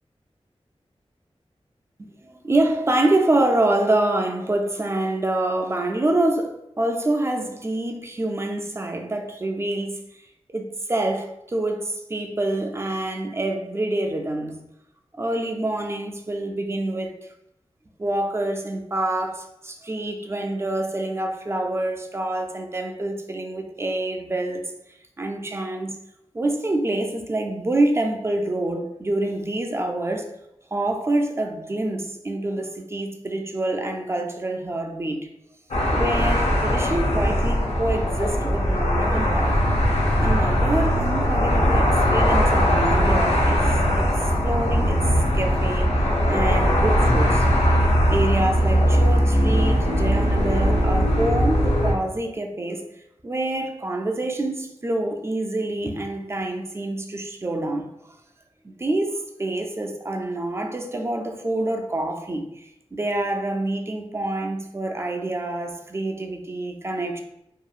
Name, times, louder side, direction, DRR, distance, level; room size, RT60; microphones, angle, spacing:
voice 1, 2.0-10.0 10.5-14.6 15.1-17.3 18.0-24.6 25.2-25.9 26.3-30.3 30.7-35.3 35.9-39.6 40.2-44.1 44.4-45.0 45.3-47.5 48.1-52.8 53.2-57.9 58.6-67.2, right 1 dB, 25° right, 0.3 m, -26 dB
sound 1, 35.7-51.9, equal, 90° left, 0.5 m, -20 dB
2.7 x 2.4 x 2.3 m
wide cardioid pair, 90°, 11 cm